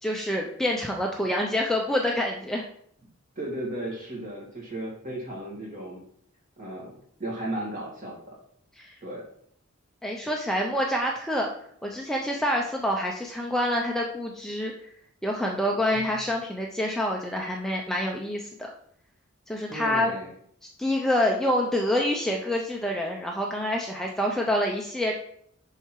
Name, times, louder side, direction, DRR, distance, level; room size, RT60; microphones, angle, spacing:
voice 1, 0.0-2.6 8.8-8.9 10.0-11.5 11.8-14.9 15.2-18.7 19.5-20.1 20.8-25.1, left 1 dB, ahead, -1 dB, 0.7 m, -27 dB
voice 2, 3.4-6.0 6.6-6.9 7.2-8.4 9.0-9.2 15.9-16.1 19.7-20.3, right 1 dB, 40° right, -2 dB, 2.6 m, -35 dB
6.9 x 5.7 x 4.7 m, 0.66 s
head